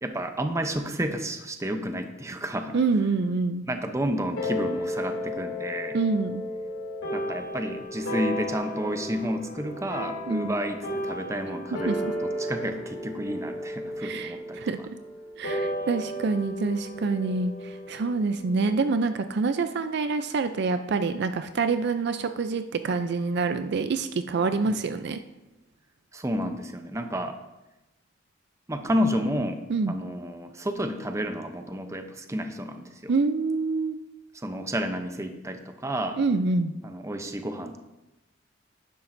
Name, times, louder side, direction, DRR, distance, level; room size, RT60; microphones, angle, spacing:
voice 1, 0.0-2.8 3.7-6.0 7.1-14.6 24.6-24.8 26.1-27.4 28.7-33.1 34.3-36.2 36.8-37.8, equal, 15° right, 7 dB, 0.6 m, -31 dB
voice 2, 2.7-3.6 5.9-6.4 10.3-10.5 11.7-12.1 14.0-14.8 15.4-25.2 29.7-30.0 33.1-34.0 36.2-36.7, right 4 dB, 55° right, 9 dB, 0.4 m, -26 dB
sound 1, 4.4-19.1, left 1 dB, 90° left, 2.7 m, -34 dB
11.5 x 10.0 x 2.6 m, 0.99 s
head